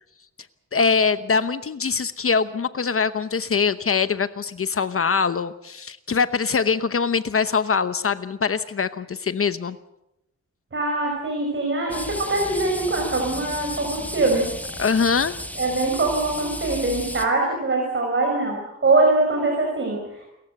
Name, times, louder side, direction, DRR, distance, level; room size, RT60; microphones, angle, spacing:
voice 1, 0.7-9.8 14.8-15.4, left 5 dB, 50° left, 12 dB, 0.9 m, -23 dB
voice 2, 10.7-14.5 15.6-20.3, right 2 dB, 45° right, 1 dB, 5.7 m, -23 dB
sound 1, 11.9-17.2, left 1 dB, 5° left, 2.0 m, -34 dB
29.0 x 14.5 x 7.9 m, 0.85 s
wide cardioid pair, 145°, 29 cm